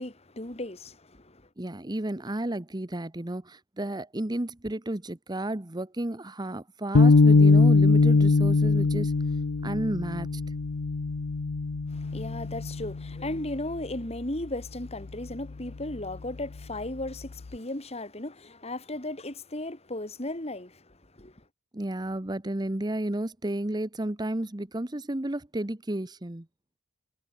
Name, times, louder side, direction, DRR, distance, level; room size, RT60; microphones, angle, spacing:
voice 1, 0.0-1.4 11.9-20.8 21.2-21.3, left 1 dB, 30° left, 2.5 m, -36 dB
voice 2, 1.6-9.1 9.6-10.4 21.7-26.4, right 1 dB, 20° right, 0.9 m, -32 dB
sound 1, 6.9-13.4, left 3 dB, 70° left, 0.7 m, -22 dB
head